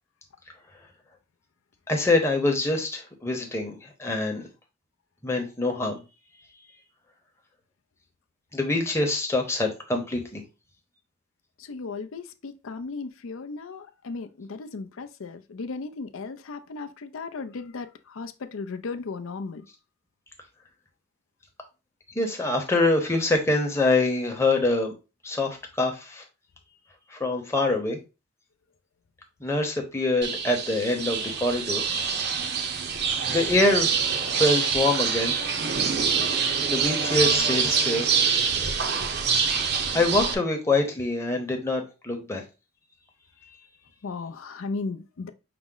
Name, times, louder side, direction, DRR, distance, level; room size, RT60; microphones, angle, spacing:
voice 1, 1.9-4.4 5.2-6.0 8.5-10.4 22.1-24.9 25.2-26.2 27.1-28.0 29.4-31.9 33.3-33.9 34.3-35.3 36.7-38.1 39.9-42.4, left 2 dB, 15° left, 0.8 m, -25 dB
voice 2, 11.6-19.6 44.0-45.3, left 4 dB, 75° left, 0.5 m, -36 dB
sound 1, 30.2-40.3, right 6 dB, 50° right, 0.5 m, -25 dB
5.8 x 2.1 x 3.7 m
head